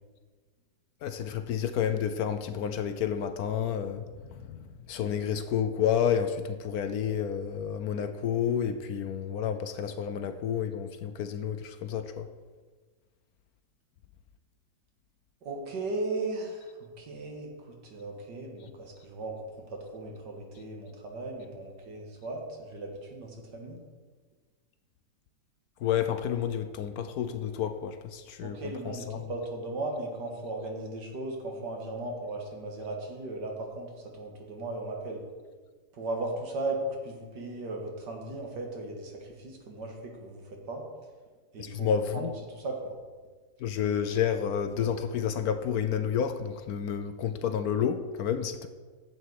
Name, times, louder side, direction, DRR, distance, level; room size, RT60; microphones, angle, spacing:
voice 1, 1.0-4.1 4.5-12.3 25.8-29.2 41.6-42.3 43.6-48.7, left 8 dB, 70° left, 9 dB, 1.0 m, -30 dB
voice 2, 15.4-23.8 28.4-35.3 35.9-40.8 41.5-42.9, right 2 dB, 70° right, 1 dB, 2.1 m, -37 dB
10.5 x 7.8 x 4.7 m, 1.4 s
omnidirectional pair, 1.9 m